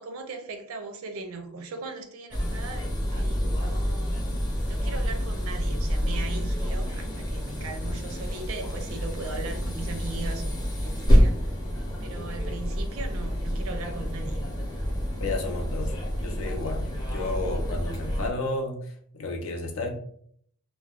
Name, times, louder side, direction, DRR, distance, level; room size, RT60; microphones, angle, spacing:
voice 1, 0.0-4.2 4.7-11.6 12.0-14.4, right 3 dB, 80° right, 0.5 m, -39 dB
sound 1, 2.3-18.3, equal, 20° left, 0.6 m, -27 dB
voice 2, 15.2-18.8 19.1-19.9, left 2 dB, 75° left, 0.6 m, -32 dB
2.2 x 2.1 x 3.4 m
head